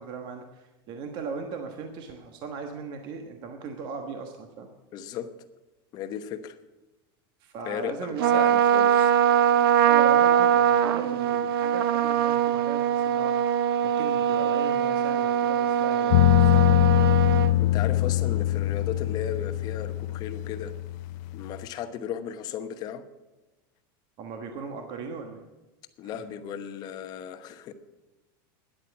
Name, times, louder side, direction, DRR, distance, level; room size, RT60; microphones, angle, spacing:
voice 1, 0.0-4.7 7.4-8.5 9.8-13.4 13.8-17.1 24.2-25.4 26.0-26.2, right 5 dB, 40° right, 4 dB, 1.4 m, -38 dB
voice 2, 4.9-5.3 5.9-6.6 7.6-9.1 17.6-20.7 21.3-23.1 26.0-27.7, left 8 dB, 35° left, 9 dB, 1.0 m, -35 dB
Trumpet, 8.2-17.5, right 10 dB, 90° right, 0.9 m, -22 dB
sound 1, 16.1-21.6, left 16 dB, 55° left, 0.4 m, -23 dB
13.0 x 10.5 x 7.3 m, 1.1 s
supercardioid pair, 160°, 12 cm